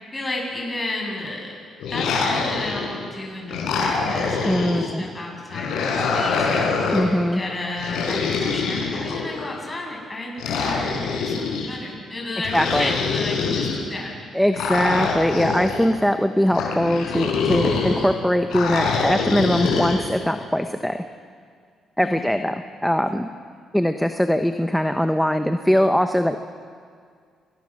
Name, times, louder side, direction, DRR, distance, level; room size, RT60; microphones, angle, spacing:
voice 1, 0.1-1.5 1.9-6.8 7.3-14.4 22.0-22.3, left 2 dB, 20° left, -1 dB, 7.9 m, -32 dB
sound 1, 1.8-3.0 3.5-4.9 5.5-7.1 7.8-9.5 10.4-11.7 12.4-13.8 14.5-15.9 16.5-18.1 18.5-20.0, left 4 dB, 85° left, 4.8 m, -24 dB
voice 2, 4.5-5.0 6.9-7.4 12.5-12.9 14.3-21.0 22.0-23.3 23.7-26.4, equal, ahead, 7 dB, 1.0 m, -21 dB
28.5 x 20.5 x 6.4 m, 2.1 s
cardioid pair, 90°, 0 cm